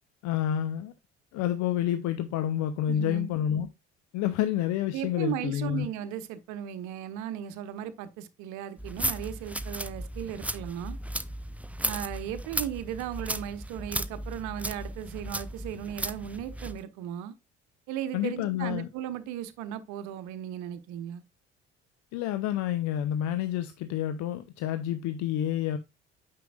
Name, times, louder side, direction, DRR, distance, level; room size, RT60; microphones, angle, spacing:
voice 1, 0.2-0.9 1.3-3.7 4.1-5.9 18.1-18.9 22.1-25.8, left 11 dB, 60° left, 0.8 m, -29 dB
voice 2, 2.9-3.3 4.9-11.0 11.8-17.3 17.9-21.2, right 10 dB, 60° right, 1.0 m, -36 dB
sound 1, 8.8-16.8, right 1 dB, 5° right, 0.6 m, -35 dB
9.2 x 6.8 x 2.4 m
figure-of-eight pair, 50°, 32 cm